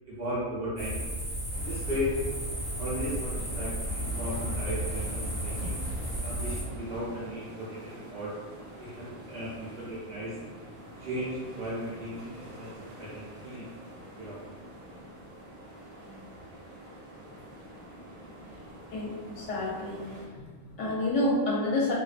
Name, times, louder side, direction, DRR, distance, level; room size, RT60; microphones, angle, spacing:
voice 1, 0.1-1.0 1.5-2.1 2.8-5.8 6.2-8.4 8.8-10.4 11.0-13.8 14.2-14.5, equal, 55° right, -8 dB, 0.7 m, -36 dB
sound 1, 0.8-6.6, right 1 dB, 30° left, 1.0 m, -33 dB
sound 2, 1.5-20.3, right 1 dB, 80° right, 1.1 m, -46 dB
voice 2, 18.9-20.0 20.3-21.9, left 1 dB, 70° left, -5 dB, 0.8 m, -29 dB
2.4 x 2.1 x 2.4 m, 1.4 s
omnidirectional pair, 1.4 m